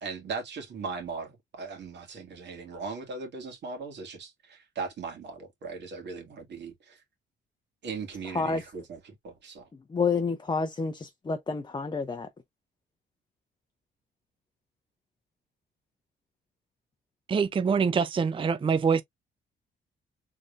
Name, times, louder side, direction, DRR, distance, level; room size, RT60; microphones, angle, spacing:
voice 1, 0.0-7.0 7.8-9.7, right 4 dB, 60° right, 2.2 m, -38 dB
voice 2, 9.9-12.3, left 4 dB, 20° left, 0.6 m, -29 dB
voice 3, 17.3-19.0, right 6 dB, 25° right, 0.5 m, -24 dB
3.8 x 3.6 x 2.5 m
cardioid pair, 90°, 20 cm